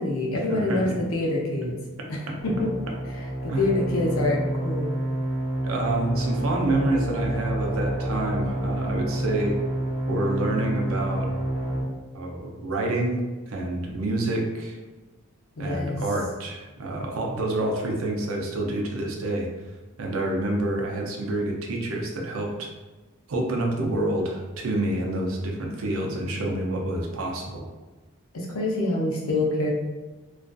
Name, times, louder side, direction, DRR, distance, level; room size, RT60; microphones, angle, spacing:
voice 1, 0.0-1.7 2.1-2.7 3.4-5.0 15.6-16.0 28.3-29.7, left 2 dB, 90° left, -2 dB, 0.6 m, -26 dB
voice 2, 0.5-0.9 2.3-2.4 3.5-3.7 5.6-9.6 10.1-11.3 12.1-13.2 13.5-14.8 15.6-19.5 20.0-22.7 23.3-27.7, right 1 dB, 80° right, 1 dB, 0.5 m, -28 dB
sound 1, 2.4-11.8, right 1 dB, 10° right, 0.7 m, -28 dB
2.5 x 2.4 x 2.2 m, 1.2 s
head